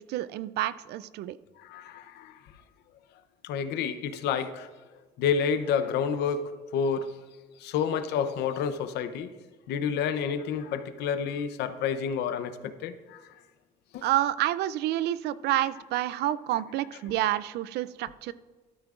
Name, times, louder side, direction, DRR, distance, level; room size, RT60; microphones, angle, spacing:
voice 1, 0.0-1.4 14.0-18.3, right 13 dB, 75° right, 17 dB, 0.4 m, -29 dB
voice 2, 1.6-2.4 3.4-4.7 5.2-7.1 7.6-9.3 9.7-13.3 13.9-14.0, left 7 dB, 80° left, 10 dB, 0.8 m, -29 dB
13.5 x 12.0 x 2.5 m, 1.3 s
cardioid pair, 110°, 17 cm